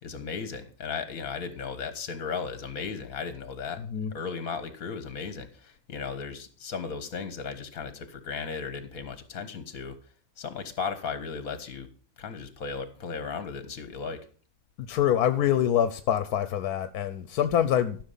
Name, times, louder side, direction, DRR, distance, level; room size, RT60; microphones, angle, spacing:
voice 1, 0.0-3.8 4.1-10.0 10.4-11.9 12.2-14.2, left 5 dB, 65° left, 1.8 m, -36 dB
voice 2, 3.8-4.1 14.8-18.0, left 10 dB, 85° left, 1.3 m, -25 dB
14.0 x 6.3 x 5.6 m
omnidirectional pair, 1.6 m